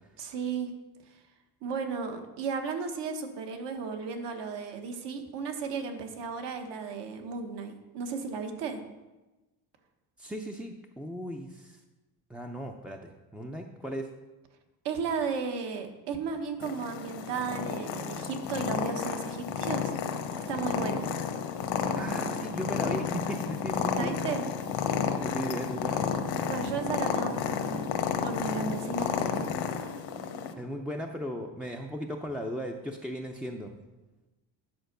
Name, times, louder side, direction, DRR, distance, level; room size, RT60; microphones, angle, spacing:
voice 1, 0.2-0.7 1.6-8.8 14.8-19.9 20.5-21.1 23.9-24.4 26.4-27.8 28.2-29.5, right 5 dB, 65° right, 6 dB, 1.3 m, -34 dB
voice 2, 10.2-11.8 12.3-14.1 21.9-24.2 25.2-26.1 30.6-33.7, equal, ahead, 2 dB, 0.4 m, -37 dB
Purr, 16.6-30.5, left 7 dB, 80° left, 1.0 m, -31 dB
10.5 x 4.5 x 6.6 m, 1.1 s
cardioid pair, 135°, 45 cm